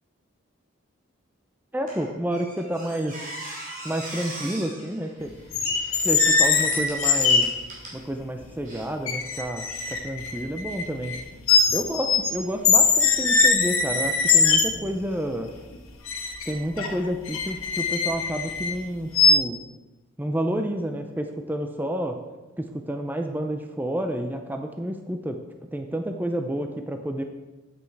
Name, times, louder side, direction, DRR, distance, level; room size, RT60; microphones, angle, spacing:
voice 1, 1.7-3.1 3.8-5.3 6.0-7.5 7.9-11.2 11.7-15.5 16.5-19.6 20.2-22.2 22.6-25.4 25.7-27.2, right 1 dB, 10° right, 5 dB, 0.5 m, -30 dB
Squeak, 1.9-8.0 8.6-8.8, right 1 dB, 40° right, 2.9 m, -40 dB
sound 1, 5.5-7.4 8.4-8.5 9.1-11.2 11.5-12.3 12.6-14.9 16.0-18.7 19.1-19.3, left 5 dB, 90° left, 1.5 m, -21 dB
8.6 x 8.3 x 4.7 m, 1.1 s
head